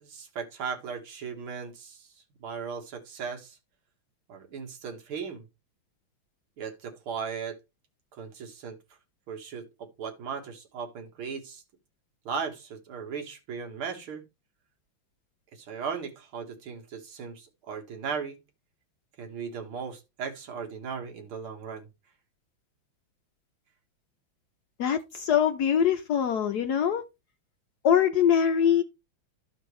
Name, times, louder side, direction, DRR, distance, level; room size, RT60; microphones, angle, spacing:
voice 1, 0.0-2.1 2.4-3.6 4.3-5.5 6.6-7.6 8.2-8.8 9.3-11.6 12.3-14.2 15.5-18.4 19.2-21.9, right 6 dB, 90° right, 2.4 m, -37 dB
voice 2, 24.8-27.0 27.8-28.8, left 8 dB, 70° left, 1.0 m, -23 dB
13.5 x 4.5 x 3.1 m
omnidirectional pair, 2.3 m